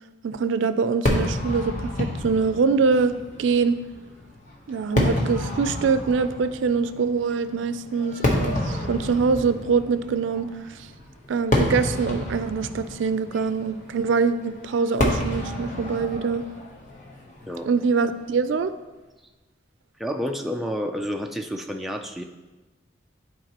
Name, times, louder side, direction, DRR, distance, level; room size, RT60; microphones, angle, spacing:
voice 1, 0.2-3.8 4.7-10.9 11.3-16.4 17.6-18.7, right 5 dB, 90° right, 12 dB, 0.4 m, -24 dB
Fireworks, 1.1-18.4, left 1 dB, 40° left, 1.0 m, -29 dB
voice 2, 20.0-22.2, equal, ahead, 3 dB, 0.3 m, -29 dB
11.0 x 4.6 x 2.9 m, 1.2 s
head